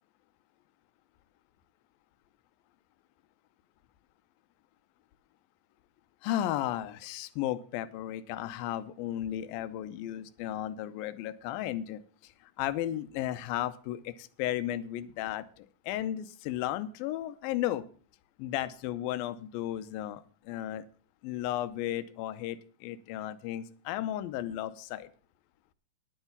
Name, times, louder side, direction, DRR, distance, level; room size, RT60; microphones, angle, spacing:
voice 1, 6.2-17.8 18.4-20.8 21.2-25.1, left 12 dB, 85° left, 13 dB, 2.6 m, -34 dB
10.5 x 8.2 x 7.1 m, 0.43 s
omnidirectional pair, 4.1 m